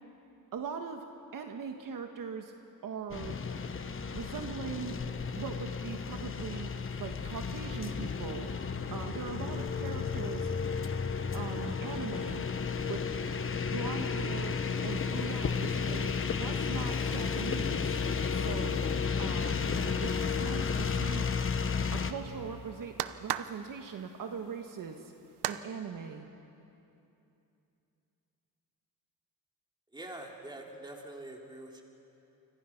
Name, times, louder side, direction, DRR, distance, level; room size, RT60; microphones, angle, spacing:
voice 1, 0.5-1.0 1.3-2.5 2.8-3.4 4.1-4.9 5.3-6.7 7.0-8.5 8.9-10.5 11.3-12.4 12.9-13.1 13.7-14.6 14.8-16.1 16.4-18.0 18.3-18.8 19.2-21.2 21.9-25.1 25.5-26.3, right 6 dB, 55° right, 4 dB, 1.5 m, -40 dB
sound 1, 3.1-22.1, left 5 dB, 30° left, 1.2 m, -33 dB
sound 2, 20.5-25.6, right 12 dB, 80° right, 0.9 m, -40 dB
voice 2, 29.9-31.8, right 1 dB, 10° right, 0 dB, 3.3 m, -45 dB
29.0 x 25.5 x 5.9 m, 2.8 s
cardioid pair, 125°, 39 cm